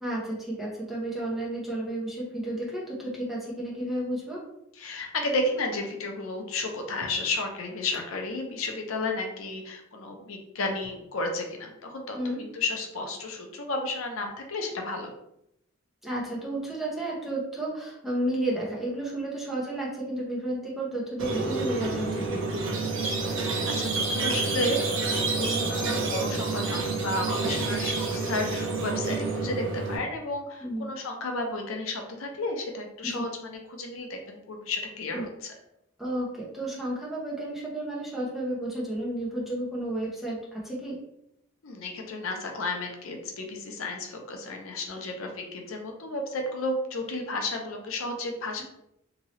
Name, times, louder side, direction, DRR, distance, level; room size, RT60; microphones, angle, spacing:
voice 1, 0.0-4.4 12.1-12.4 16.0-22.6 30.6-30.9 33.1-33.2 35.1-35.2 36.0-41.0, right 1 dB, ahead, -6 dB, 0.8 m, -32 dB
voice 2, 4.7-15.1 23.7-35.5 41.6-48.6, left 2 dB, 80° left, 3 dB, 0.6 m, -32 dB
Squeak, 21.2-30.0, right 3 dB, 65° right, 0.7 m, -28 dB
2.9 x 2.7 x 2.9 m, 0.78 s
head